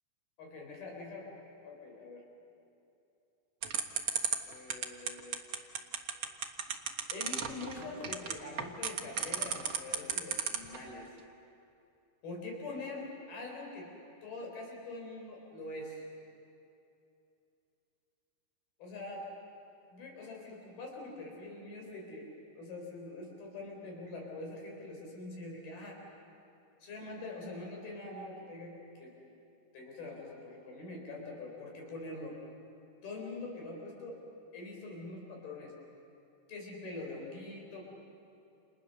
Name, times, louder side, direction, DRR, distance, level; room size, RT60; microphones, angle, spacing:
voice 1, 0.4-1.3 1.6-2.2 4.4-5.4 7.1-11.1 12.2-13.9 14.2-16.0 18.8-19.3 19.9-22.3 22.6-26.0 26.8-29.2 29.7-32.4 33.0-34.2 34.5-35.7 36.5-37.9, left 2 dB, 75° left, 0 dB, 6.2 m, -44 dB
sound 1, 3.6-10.8, right 7 dB, 60° right, 1.3 m, -33 dB
29.5 x 29.0 x 6.7 m, 2.7 s
omnidirectional pair, 4.3 m